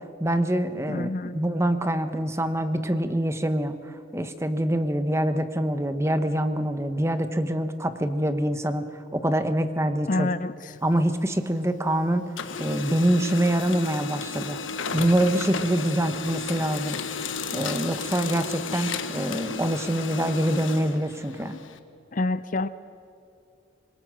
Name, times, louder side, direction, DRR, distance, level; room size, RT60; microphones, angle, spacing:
voice 1, 0.2-8.9 9.1-10.3 10.8-12.3 12.6-14.6 14.9-17.0 17.5-21.6, right 1 dB, 15° right, 9 dB, 1.0 m, -25 dB
voice 2, 0.9-1.4 10.1-10.8 22.1-22.7, left 2 dB, 40° left, 14 dB, 0.6 m, -27 dB
Printer, 10.7-11.9 12.2-21.8, left 5 dB, 80° left, 1.3 m, -33 dB
26.0 x 20.5 x 6.3 m, 2.7 s
head